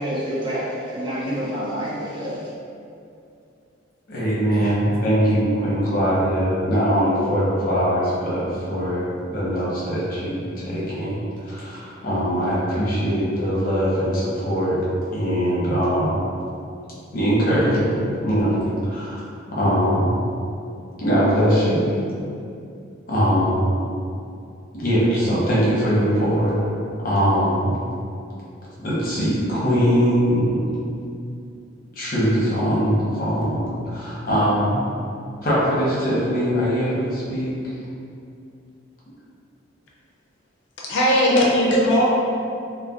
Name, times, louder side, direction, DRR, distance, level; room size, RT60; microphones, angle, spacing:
voice 1, 0.0-2.4, equal, 25° right, -6 dB, 0.4 m, -27 dB
voice 2, 4.1-14.8 15.1-16.2 17.1-18.0 18.2-18.6 18.8-19.2 19.5-20.2 21.0-21.9 23.1-23.7 24.7-26.6 27.0-27.8 28.8-30.7 32.0-34.8 35.4-37.5, equal, 45° left, -8 dB, 0.8 m, -21 dB
voice 3, 40.8-42.0, equal, 60° left, -4 dB, 0.4 m, -18 dB
2.3 x 2.1 x 3.5 m, 2.5 s
head